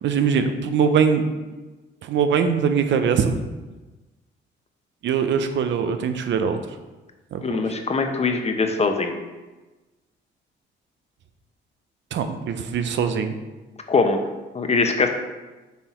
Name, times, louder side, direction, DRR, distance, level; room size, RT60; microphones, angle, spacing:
voice 1, 0.0-1.2 2.0-3.4 5.0-6.6 7.3-7.4 12.1-13.3, right 6 dB, 65° right, 8 dB, 0.7 m, -22 dB
voice 2, 7.4-9.1 13.9-14.2 14.5-15.1, left 4 dB, 30° left, 5 dB, 0.8 m, -22 dB
5.7 x 4.4 x 4.3 m, 1.2 s
cardioid pair, 90°, 20 cm